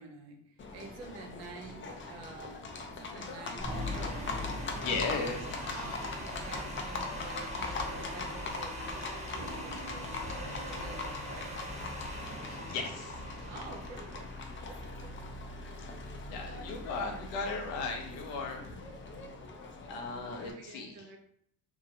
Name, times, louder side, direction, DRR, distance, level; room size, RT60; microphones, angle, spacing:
voice 1, 0.0-4.3 4.8-11.5 13.5-14.4 14.6-15.2 20.4-21.2, right 3 dB, 75° right, 2 dB, 0.7 m, -49 dB
Livestock farm animals working animals, 0.6-20.5, left 3 dB, 30° left, 0.4 m, -41 dB
sound 1, 3.6-15.7, equal, 15° right, 0.6 m, -41 dB
voice 2, 4.5-5.4 5.7-5.9 7.6-7.8 12.5-13.5 15.8-16.0 16.3-18.9 19.9-21.0, left 4 dB, 75° left, 3 dB, 0.8 m, -37 dB
sound 2, 9.3-15.1, right 3 dB, 40° right, 1.1 m, -52 dB
2.9 x 2.4 x 2.8 m, 0.67 s
supercardioid pair, 90°, 43 cm